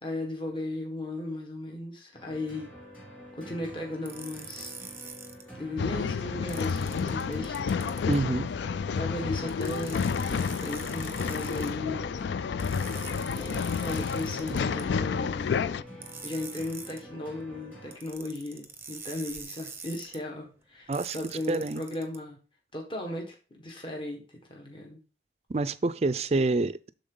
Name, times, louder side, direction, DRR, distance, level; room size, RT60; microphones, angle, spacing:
voice 1, 0.0-2.7 3.3-4.8 5.5-7.8 8.9-12.1 13.3-15.9 16.2-22.4 22.7-25.0, left 1 dB, 30° left, 1.5 m, -36 dB
sound 1, 2.1-18.0, equal, 10° left, 2.8 m, -47 dB
sound 2, 4.0-5.4 6.5-8.2 9.5-11.7 12.6-14.8 16.0-17.0 17.9-20.2 20.9-22.2, right 5 dB, 15° right, 0.8 m, -44 dB
Male speech man speaking / Chatter / Rattle, 5.8-15.8, left 6 dB, 80° left, 0.3 m, -30 dB
voice 2, 8.1-8.5 20.9-21.2 21.5-21.8 25.5-26.9, right 2 dB, 35° right, 0.4 m, -27 dB
11.5 x 3.9 x 3.8 m
head